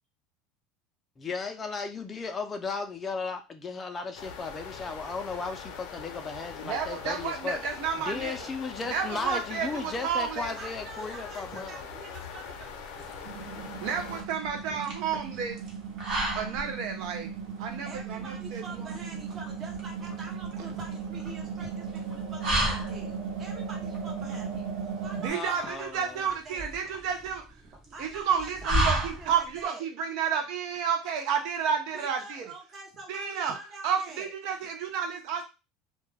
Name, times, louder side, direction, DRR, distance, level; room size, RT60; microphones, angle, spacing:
voice 1, 1.2-7.6 8.0-11.8 25.3-26.2, left 4 dB, 25° left, 5 dB, 0.3 m, -35 dB
sound 1, 4.1-14.2, left 6 dB, 80° left, 0.5 m, -42 dB
voice 2, 6.6-8.5 8.9-10.5 13.8-15.6 16.4-17.3 17.6-18.6 25.2-27.4 28.0-32.5 33.1-33.5 33.8-35.4, right 7 dB, 70° right, 4 dB, 0.4 m, -31 dB
voice 3, 10.5-13.8 17.8-23.1 23.4-26.7 27.9-29.8 31.9-34.3, right 3 dB, 30° right, 0 dB, 0.7 m, -46 dB
sound 2, 12.6-29.6, right 1 dB, 50° right, 1.0 m, -34 dB
sound 3, 13.2-25.3, right 6 dB, 85° right, 1.0 m, -37 dB
2.2 x 2.1 x 3.2 m, 0.28 s
supercardioid pair, 125°, 0 cm